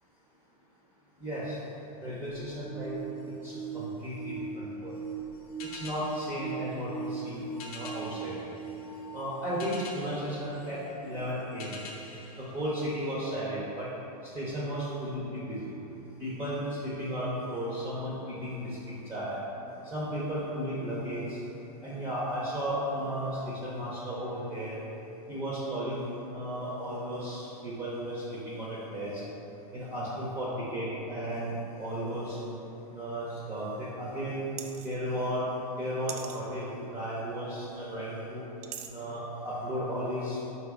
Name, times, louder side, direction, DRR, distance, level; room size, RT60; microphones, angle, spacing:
voice 1, 1.2-1.6 2.0-3.0 3.4-4.9 5.7-8.3 9.1-11.7 12.4-13.9 14.3-15.6 16.2-18.6 19.1-19.4 19.8-21.4 21.8-24.7 25.3-29.1 29.7-32.4 32.9-34.5 34.8-35.5 35.8-38.4 38.9-40.5, equal, 10° right, -7 dB, 0.5 m, -34 dB
sound 1, 2.3-9.9 10.6-10.7 11.7-11.8, right 5 dB, 30° left, 0.8 m, -40 dB
sound 2, 5.6-13.5, left 3 dB, 65° left, 0.6 m, -48 dB
sound 3, 34.6-35.0 36.1-36.4 38.6-38.9, right 9 dB, 80° right, 0.4 m, -40 dB
4.1 x 2.9 x 3.5 m, 3.0 s
supercardioid pair, 135°, 20 cm